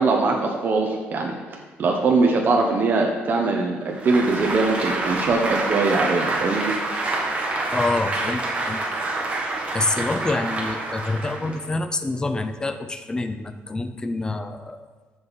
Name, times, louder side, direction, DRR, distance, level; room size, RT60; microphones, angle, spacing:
voice 1, 0.0-1.4 1.8-6.7, right 3 dB, 45° right, 1 dB, 1.1 m, -21 dB
Applause, 3.9-11.7, right 2 dB, 30° right, 1.6 m, -27 dB
voice 2, 7.7-8.8 9.7-14.8, left 2 dB, 15° left, 9 dB, 0.6 m, -27 dB
14.0 x 5.2 x 4.1 m, 1.4 s
cardioid pair, 120°, 4 cm